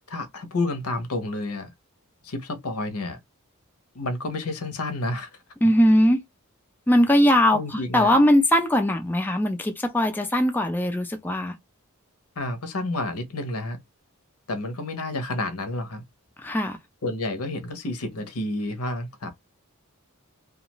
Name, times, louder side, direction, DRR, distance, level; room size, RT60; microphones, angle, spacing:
voice 1, 0.1-1.7 2.2-3.2 3.9-5.4 7.5-8.2 12.4-13.8 14.5-16.0 17.0-19.3, left 2 dB, 80° left, 0.8 m, -30 dB
voice 2, 5.6-6.2 6.9-11.6 16.4-16.8, equal, 10° left, 0.4 m, -20 dB
2.4 x 2.3 x 2.9 m
head